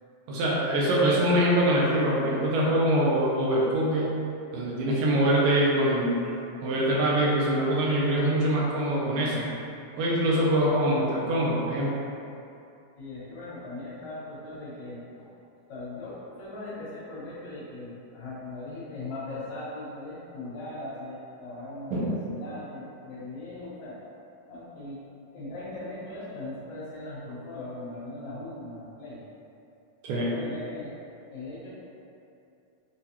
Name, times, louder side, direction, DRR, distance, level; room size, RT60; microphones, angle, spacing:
voice 1, 0.3-4.1 4.5-6.2 6.6-9.5 10.0-11.9 21.9-22.2 30.0-30.4, right 1 dB, 80° right, -5 dB, 2.1 m, -24 dB
voice 2, 13.0-15.3 15.7-24.0 24.5-25.0 25.3-29.2 30.2-30.9 31.3-31.7, left 2 dB, 65° left, -10 dB, 2.0 m, -39 dB
6.3 x 2.3 x 2.8 m, 2.7 s
omnidirectional pair, 4.1 m